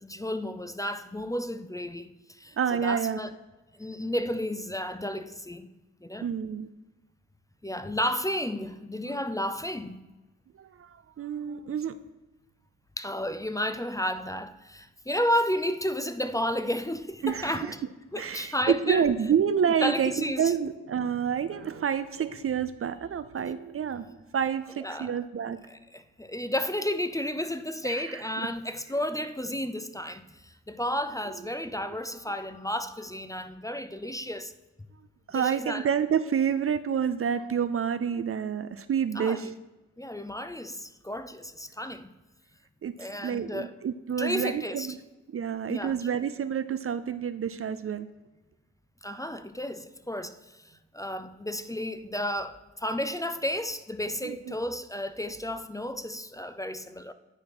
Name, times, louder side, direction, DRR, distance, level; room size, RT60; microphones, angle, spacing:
voice 1, 0.0-3.3 3.8-5.7 6.0-6.3 7.6-10.0 13.0-17.7 18.1-19.1 19.8-20.5 24.8-25.1 25.7-34.5 35.3-35.9 39.1-39.5 40.0-42.1 43.0-43.7 44.2-44.9 45.7-46.0 49.0-57.1, left 1 dB, 10° left, 0.6 m, -32 dB
voice 2, 2.6-3.2 6.2-6.7 10.6-12.0 17.2-17.7 18.2-25.6 27.8-28.2 35.3-39.5 42.8-45.0 45.3-48.1 54.2-54.6, right 7 dB, 45° right, 0.5 m, -28 dB
9.7 x 4.3 x 4.7 m
hypercardioid pair, 40°, 33 cm